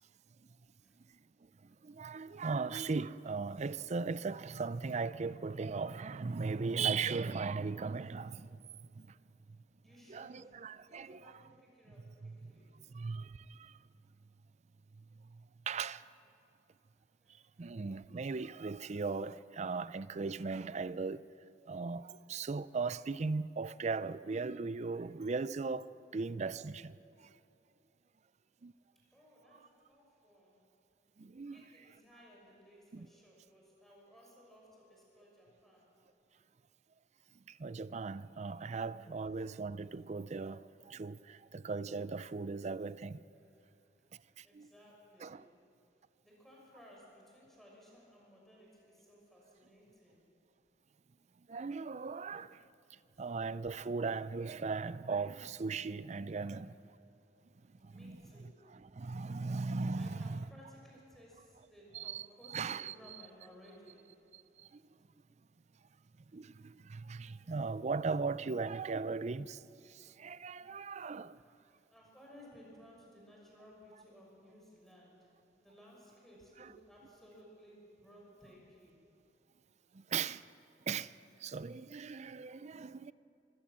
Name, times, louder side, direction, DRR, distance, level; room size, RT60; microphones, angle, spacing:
voice 1, 1.8-8.6 9.0-9.1 10.1-11.3 12.1-12.5 12.9-13.7 15.7-16.0 17.6-21.3 21.7-25.9 26.1-27.0 28.6-28.7 31.2-31.6 32.9-33.1 37.6-43.2 44.4-44.7 45.2-45.4 51.5-52.6 53.2-56.7 57.8-58.3 58.7-60.5 61.9-62.9 64.3-64.4 66.3-69.6 69.9-71.4 76.6-76.7 79.9-80.4 80.9-81.1 81.4-83.1, right 4 dB, 40° right, 0.5 m, -38 dB
voice 2, 9.8-12.7 17.2-17.8 29.1-30.6 31.5-35.9 43.4-43.7 44.4-45.5 46.2-50.2 56.7-56.8 57.9-58.6 59.9-64.1 71.8-75.3 75.6-79.0, equal, ahead, 6.1 m, -59 dB
25.0 x 16.0 x 7.5 m
head